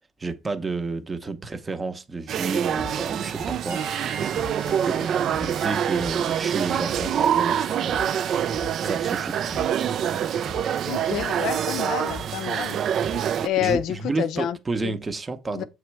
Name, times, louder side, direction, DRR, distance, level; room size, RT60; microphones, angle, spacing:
voice 1, 0.2-4.4 4.6-7.9 8.8-9.5 13.4-15.6, right 3 dB, 20° right, 0.7 m, -31 dB
sound 1, 2.3-13.5, right 9 dB, 50° right, 0.3 m, -25 dB
sound 2, 2.7-3.1 3.4-4.1 4.3-4.7 5.0-5.7 6.0-6.6 6.9-7.3 7.6-8.3 8.5-9.2 9.5-9.9 10.1-10.8 11.1-11.8 12.1-12.4 12.7-13.4 13.7-14.0, left 4 dB, 20° left, 0.8 m, -41 dB
Bowed string instrument, 3.6-10.9, right 6 dB, 80° right, 1.3 m, -42 dB
voice 2, 10.9-12.8 13.4-14.6 14.8-14.9 15.6-15.7, left 11 dB, 70° left, 0.6 m, -28 dB
7.7 x 3.1 x 4.5 m
cardioid pair, 155°, 0 cm